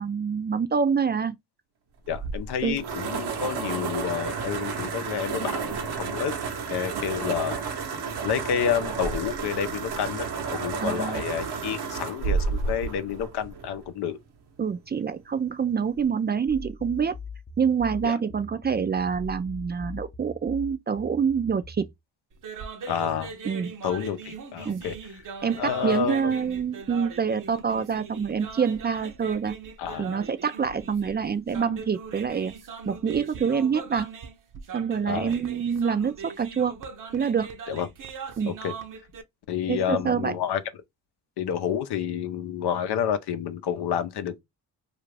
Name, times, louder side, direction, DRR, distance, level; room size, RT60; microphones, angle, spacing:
voice 1, 0.0-1.4 2.6-2.8 10.8-11.2 14.6-17.1 17.6-21.8 23.4-23.7 24.7-24.8 25.4-29.6 30.0-32.5 32.8-34.1 34.7-36.7 37.1-37.5 38.4-38.5 39.7-40.4, right 6 dB, 25° right, 0.3 m, -26 dB
voice 2, 2.1-6.3 6.7-7.6 8.2-14.2 18.0-18.1 22.9-23.3 23.8-24.9 25.6-26.3 29.8-30.1 35.0-35.3 37.7-37.9 38.5-38.7 39.5-40.6 41.4-44.4, left 8 dB, 75° left, 0.6 m, -29 dB
sound 1, 2.1-13.9, right 5 dB, 80° right, 0.9 m, -31 dB
sound 2, 16.5-21.9, left 3 dB, 25° left, 0.7 m, -41 dB
sound 3, 22.3-39.2, right 5 dB, 50° right, 0.7 m, -41 dB
2.5 x 2.5 x 3.2 m
cardioid pair, 65°, 40 cm